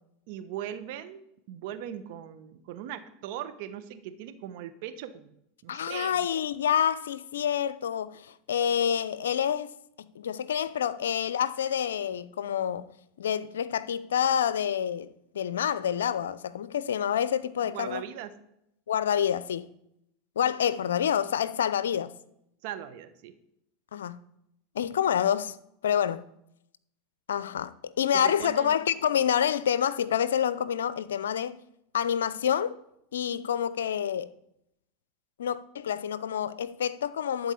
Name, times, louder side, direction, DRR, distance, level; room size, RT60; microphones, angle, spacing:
voice 1, 0.3-1.2 1.5-5.4 5.6-6.3 17.7-18.3 22.6-23.3 28.2-28.7, right 10 dB, 65° right, 1.1 m, -39 dB
voice 2, 5.7-9.7 10.2-12.9 13.2-15.1 15.3-18.0 18.9-19.7 20.4-22.1 23.9-24.2 24.7-25.6 25.8-26.3 27.3-31.5 31.9-32.7 33.1-34.3 35.4-37.5, left 9 dB, 85° left, 0.5 m, -27 dB
12.0 x 4.4 x 8.4 m
hypercardioid pair, 95°, 0 cm